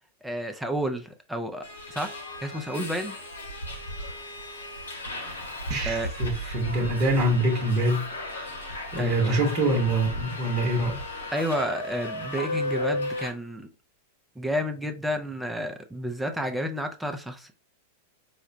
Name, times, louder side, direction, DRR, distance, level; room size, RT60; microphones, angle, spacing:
voice 1, 0.2-3.2 5.8-6.1 9.0-9.4 11.3-13.7 14.4-17.5, equal, 5° right, 0.5 m, -31 dB
Subway metro underground, 1.6-13.3, left 1 dB, 85° left, 1.1 m, -35 dB
voice 2, 5.7-8.1 8.4-8.6 8.9-11.0, right 1 dB, 35° right, 1.0 m, -25 dB
4.7 x 2.1 x 2.6 m
figure-of-eight pair, 95°, 0 cm